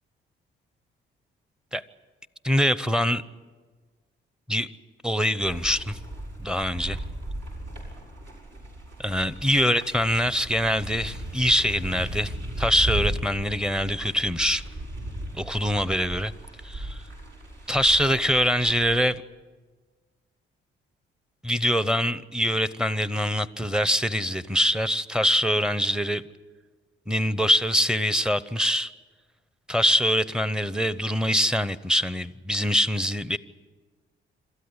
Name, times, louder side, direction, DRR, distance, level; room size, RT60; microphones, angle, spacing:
voice 1, 2.4-3.2 4.5-4.7 5.0-6.0 6.4-7.0 9.0-14.6 15.3-16.3 16.6-17.0 17.7-19.2 21.4-26.2 27.1-28.9 29.7-33.4, equal, 5° right, 0.8 m, -24 dB
sound 1, 5.4-19.0, right 1 dB, 70° right, 6.9 m, -36 dB
27.0 x 13.5 x 9.7 m
cardioid pair, 90°, 20 cm